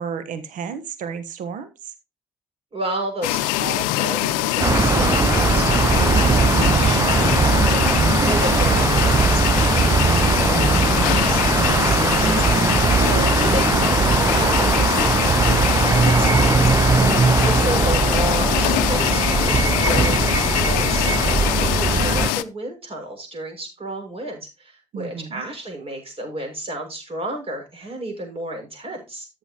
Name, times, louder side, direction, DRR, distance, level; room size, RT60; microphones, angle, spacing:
voice 1, 0.0-1.7 17.0-17.4 24.9-25.4, right 6 dB, 60° right, 11 dB, 1.3 m, -32 dB
voice 2, 2.7-16.7 17.4-29.3, right 1 dB, 40° right, 3 dB, 6.2 m, -32 dB
sound 1, 3.2-22.4, left 17 dB, 70° left, 0.6 m, -23 dB
sound 2, 4.6-22.3, right 4 dB, 20° right, 0.5 m, -19 dB
13.5 x 7.1 x 3.0 m, 0.26 s
figure-of-eight pair, 45°, 15 cm